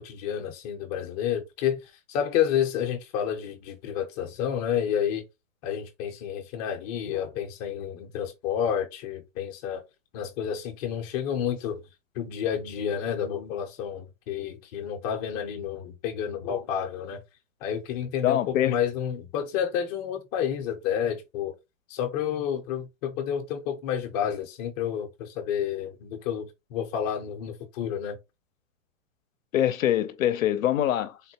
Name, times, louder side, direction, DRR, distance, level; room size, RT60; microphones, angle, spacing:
voice 1, 0.0-5.2 5.6-9.8 10.1-11.8 12.1-17.2 17.6-21.5 21.9-28.2, left 9 dB, 30° left, 0.6 m, -30 dB
voice 2, 18.2-18.7 29.5-31.2, left 11 dB, 80° left, 0.6 m, -24 dB
3.6 x 2.1 x 2.8 m
hypercardioid pair, 145°, 40 cm